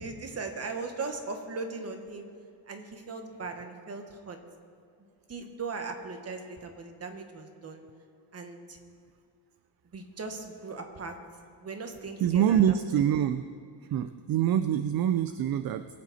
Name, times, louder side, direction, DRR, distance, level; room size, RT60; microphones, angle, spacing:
voice 1, 0.0-2.3 2.7-4.4 5.3-7.8 8.3-8.8 9.9-11.1 11.6-12.7, right 4 dB, 35° right, 5 dB, 1.4 m, -38 dB
voice 2, 12.2-13.5 13.9-15.9, right 9 dB, 55° right, 11 dB, 0.5 m, -25 dB
22.5 x 8.4 x 4.2 m, 2.4 s
cardioid pair, 150°, 44 cm